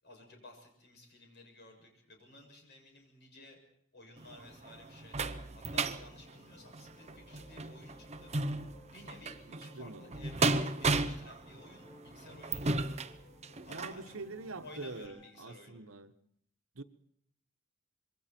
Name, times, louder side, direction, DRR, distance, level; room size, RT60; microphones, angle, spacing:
voice 1, 0.0-3.6 3.9-13.0 13.6-14.1 14.6-15.8, left 2 dB, 55° left, 7.0 m, -55 dB
sound 1, 4.2-14.0 14.6-14.7 15.0-15.1, right 3 dB, 35° right, 0.9 m, -35 dB
sound 2, 5.8-15.3, left 1 dB, 20° left, 4.2 m, -62 dB
voice 2, 9.5-10.2 13.7-16.1 16.7-16.8, right 3 dB, 85° right, 1.2 m, -45 dB
26.0 x 22.5 x 4.5 m
head